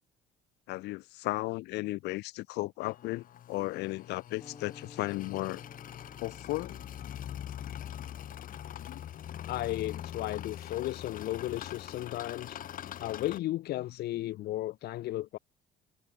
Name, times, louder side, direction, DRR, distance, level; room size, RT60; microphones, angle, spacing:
voice 1, 0.7-5.6 6.2-6.8, left 20 dB, 85° left, 2.1 m, -35 dB
sound 1, 2.8-13.4, left 10 dB, 55° left, 1.8 m, -43 dB
sound 2, 4.4-12.8, left 5 dB, 25° left, 7.6 m, -57 dB
voice 2, 9.5-12.6 13.0-15.4, left 15 dB, 70° left, 1.2 m, -35 dB
cardioid pair, 110°, 17 cm